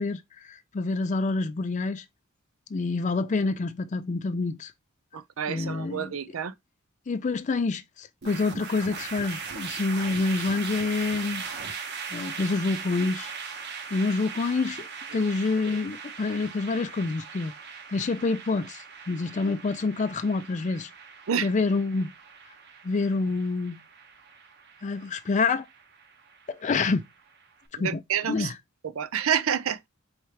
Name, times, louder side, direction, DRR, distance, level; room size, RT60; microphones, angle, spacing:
voice 1, 0.0-2.0 2.7-4.7 5.5-6.1 7.1-11.4 12.1-13.3 13.9-17.5 17.9-20.9 21.4-22.1 22.8-23.8 24.8-25.7 26.5-27.0 27.8-28.0 28.3-28.5, left 3 dB, 35° left, 0.4 m, -27 dB
voice 2, 5.1-6.5 15.1-15.3 21.3-21.5 27.8-28.5 28.8-29.9, right 8 dB, 80° right, 0.5 m, -29 dB
sound 1, 8.2-27.5, right 6 dB, 55° right, 0.8 m, -40 dB
4.4 x 3.6 x 3.2 m
head